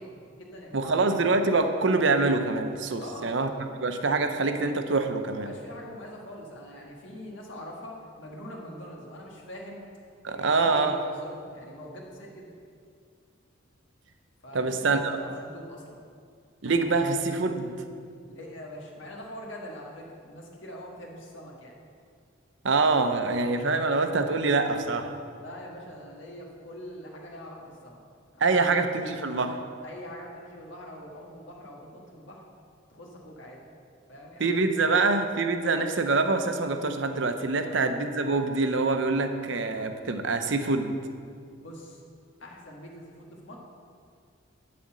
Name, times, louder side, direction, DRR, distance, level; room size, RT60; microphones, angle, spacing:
voice 1, 0.0-1.2 3.0-3.3 5.4-9.8 10.3-12.6 14.4-16.0 18.3-21.7 25.4-28.0 28.3-29.0 29.8-32.4 32.9-33.6 34.1-35.0 37.6-37.8 41.6-42.0 42.4-43.6, equal, 65° left, -1 dB, 1.6 m, -43 dB
voice 2, 0.7-3.5 3.8-5.5 10.2-11.0 14.5-15.2 16.6-17.7 22.6-25.2 28.4-29.6 34.4-41.0, right 3 dB, 65° right, 7 dB, 0.7 m, -25 dB
11.0 x 4.3 x 7.5 m, 2.2 s
head